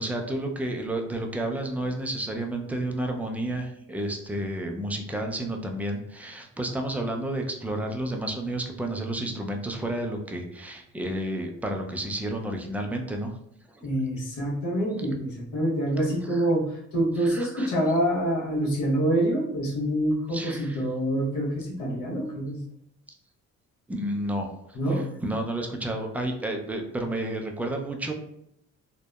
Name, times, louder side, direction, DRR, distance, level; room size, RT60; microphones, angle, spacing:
voice 1, 0.0-13.4 13.7-13.9 16.2-16.5 17.2-17.7 20.3-20.8 23.9-28.1, right 1 dB, 5° right, 2 dB, 0.3 m, -31 dB
voice 2, 13.8-22.6 24.7-25.0, right 1 dB, 80° left, -3 dB, 0.9 m, -26 dB
2.7 x 2.0 x 2.2 m, 0.75 s
cardioid pair, 90°, 30 cm